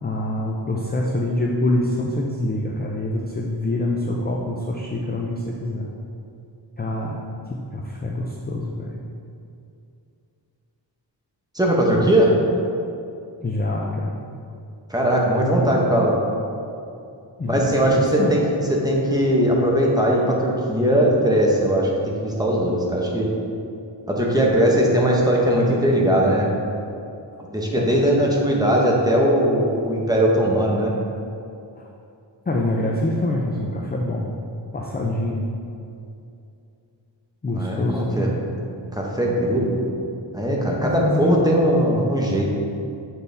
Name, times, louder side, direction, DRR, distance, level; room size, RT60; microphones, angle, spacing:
voice 1, 0.0-5.9 6.8-7.2 7.5-9.0 13.4-14.2 17.4-18.3 27.8-28.3 31.8-31.9 32.5-34.3 34.7-35.5 37.4-38.4 41.0-41.5, left 1 dB, 20° left, -2 dB, 0.4 m, -25 dB
voice 2, 11.5-12.3 14.9-16.2 17.5-18.4 18.7-23.3 24.1-26.5 27.5-30.9 37.5-38.3 38.9-39.8 40.3-42.5, right 1 dB, 10° right, -3 dB, 0.9 m, -19 dB
6.9 x 4.4 x 3.4 m, 2.6 s
wide cardioid pair, 105°, 46 cm